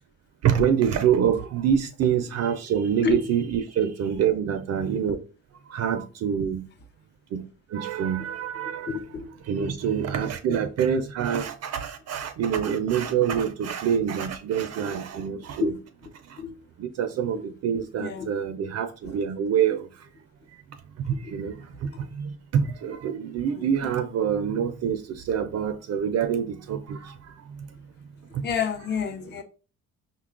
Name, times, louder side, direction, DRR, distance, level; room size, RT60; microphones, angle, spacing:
voice 1, 0.4-5.2 5.7-6.7 7.3-7.4 7.7-9.0 9.5-15.7 16.8-19.9 21.1-21.5 21.8-21.9 22.1-27.1 28.3-28.4, right 8 dB, 60° right, 0.4 m, -26 dB
voice 2, 8.9-9.3 9.6-9.8 10.5-10.6 13.4-13.5 15.6-15.8 16.4-16.5 17.3-17.4 17.7-18.3 21.1-21.2 21.9-22.1 23.5-23.7 28.4-29.4, left 6 dB, 35° left, 0.6 m, -30 dB
5.4 x 2.2 x 2.4 m
cardioid pair, 90°, 30 cm